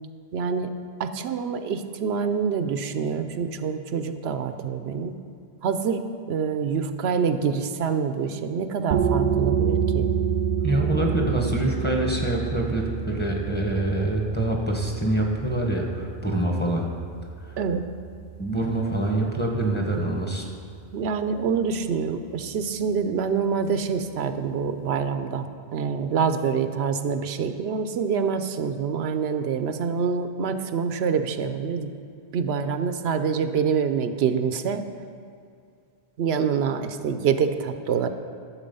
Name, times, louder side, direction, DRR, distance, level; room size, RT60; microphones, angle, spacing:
voice 1, 0.3-0.7 1.0-5.1 5.6-10.1 17.6-17.8 20.9-31.9 32.3-34.8 36.2-38.1, right 6 dB, 90° right, 9 dB, 0.9 m, -26 dB
sound 1, 8.9-20.3, right 7 dB, 55° right, 0.6 m, -28 dB
voice 2, 10.6-16.9 17.5-17.6 18.4-20.5, right 1 dB, 10° left, -1 dB, 1.4 m, -25 dB
12.0 x 7.3 x 5.4 m, 2.4 s
omnidirectional pair, 1.0 m